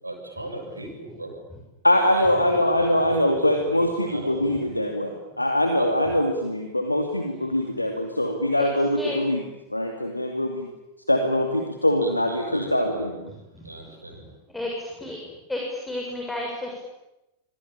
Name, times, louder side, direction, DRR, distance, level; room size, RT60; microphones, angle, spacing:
voice 1, 0.0-1.3 1.9-4.6 5.8-6.0 12.0-13.1 13.6-14.3, right 2 dB, 80° right, 1 dB, 6.7 m, -37 dB
voice 2, 1.8-9.4 9.7-10.7 11.1-13.1, left 1 dB, 85° left, 4 dB, 2.7 m, -23 dB
voice 3, 8.9-9.3 13.3-15.2 15.5-16.8, left 1 dB, 5° left, 0 dB, 6.6 m, -33 dB
27.0 x 24.5 x 8.8 m, 0.95 s
figure-of-eight pair, 90°, 0 cm